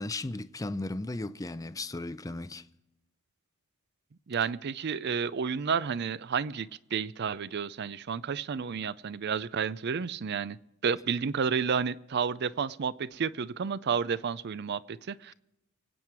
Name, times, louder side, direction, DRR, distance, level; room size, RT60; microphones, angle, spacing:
voice 1, 0.0-2.6, left 2 dB, 15° left, 0.5 m, -35 dB
voice 2, 4.3-10.6 10.8-15.3, right 6 dB, 50° right, 0.5 m, -31 dB
25.0 x 9.0 x 4.7 m
head